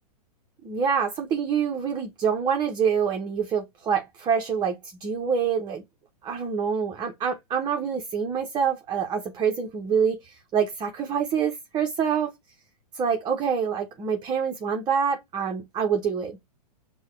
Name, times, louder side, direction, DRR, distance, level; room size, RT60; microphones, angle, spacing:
voice 1, 0.6-5.8 6.2-12.3 12.9-16.4, right 7 dB, 20° right, 0.8 m, -26 dB
5.4 x 2.2 x 3.2 m
hypercardioid pair, 120°, 21 cm